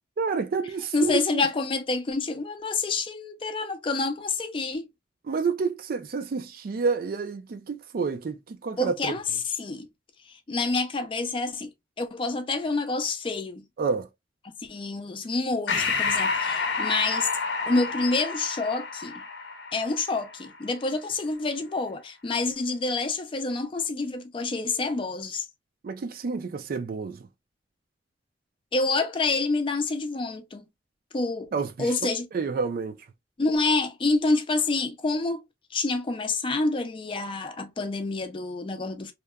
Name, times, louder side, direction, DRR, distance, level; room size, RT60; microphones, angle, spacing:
voice 1, 0.2-1.4 5.3-9.2 13.8-14.1 25.8-27.2 31.5-31.9 32.3-33.0, right 5 dB, 50° right, 0.4 m, -29 dB
voice 2, 0.9-4.9 8.8-9.9 10.3-11.7 12.0-13.6 14.6-17.3 17.7-19.2 19.7-25.5 28.7-30.7 31.1-31.5 31.8-32.3 33.4-35.4 35.7-39.1, left 3 dB, 30° left, 0.4 m, -27 dB
Breathing, 15.7-20.6, left 4 dB, 70° left, 0.6 m, -29 dB
2.8 x 2.1 x 2.3 m
head